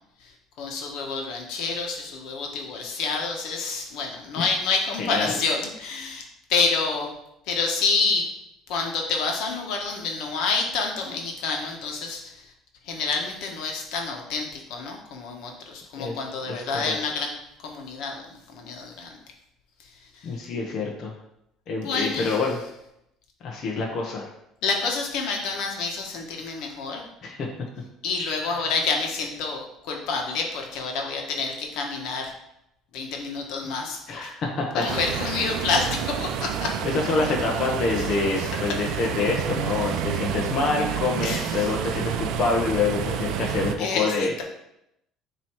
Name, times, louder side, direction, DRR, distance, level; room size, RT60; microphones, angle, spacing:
voice 1, 0.6-6.2 6.5-7.1 7.5-8.3 8.7-12.4 12.9-17.3 17.6-19.2 20.1-20.3 21.8-22.4 24.6-27.0 28.0-32.3 32.9-34.3 34.7-36.7 38.0-38.1 38.4-38.5 39.8-39.9 41.2-41.7 43.8-44.4, left 4 dB, 70° left, 2 dB, 1.3 m, -28 dB
voice 2, 5.0-5.4 16.0-16.2 16.5-16.9 20.2-21.1 21.7-22.6 23.4-24.3 27.2-27.5 28.4-28.6 34.1-35.3 36.8-44.3, left 3 dB, 45° left, -1 dB, 0.9 m, -27 dB
sound 1, 34.9-43.8, right 9 dB, 70° right, 0.5 m, -29 dB
7.4 x 3.0 x 4.6 m, 0.82 s
cardioid pair, 140°, 0 cm